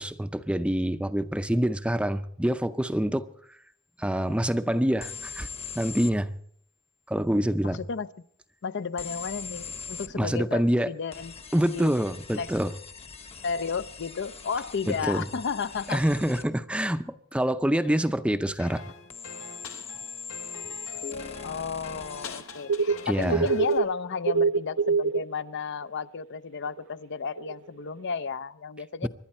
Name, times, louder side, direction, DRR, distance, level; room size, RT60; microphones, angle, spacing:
voice 1, 0.0-3.3 4.0-5.5 5.8-6.3 7.1-7.8 10.2-10.9 11.5-12.7 14.9-15.3 15.9-18.8 23.1-23.5 29.0-29.1, equal, 5° right, 0.5 m, -26 dB
sound 1, 5.0-6.2 9.0-10.1 11.1-16.5 19.1-22.4, left 5 dB, 30° left, 1.1 m, -41 dB
voice 2, 7.6-8.1 8.6-11.3 11.7-11.9 12.3-12.5 13.4-16.0 21.4-29.1, left 5 dB, 55° left, 0.5 m, -33 dB
sound 2, 18.6-23.8, left 5 dB, 85° left, 1.5 m, -42 dB
sound 3, 22.7-24.0 24.2-25.2 26.7-26.8 27.4-27.5, right 4 dB, 70° right, 0.5 m, -24 dB
26.0 x 11.5 x 4.3 m
head